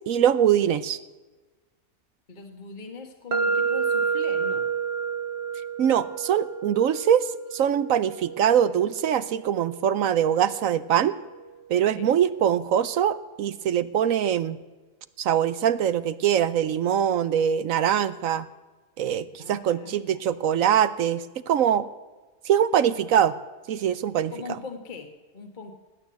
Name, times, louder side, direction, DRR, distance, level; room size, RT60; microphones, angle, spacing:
voice 1, 0.1-1.0 5.8-11.1 11.7-14.6 15.2-18.5 19.0-21.9 22.5-23.4 23.7-24.3, right 9 dB, 65° right, 15 dB, 1.0 m, -23 dB
voice 2, 2.3-4.7 11.9-12.1 19.4-20.2 24.3-25.7, left 4 dB, 30° left, 4 dB, 1.5 m, -40 dB
sound 1, 3.3-11.2, right 5 dB, 45° right, 1.3 m, -30 dB
18.5 x 9.5 x 7.7 m, 1.2 s
omnidirectional pair, 1.7 m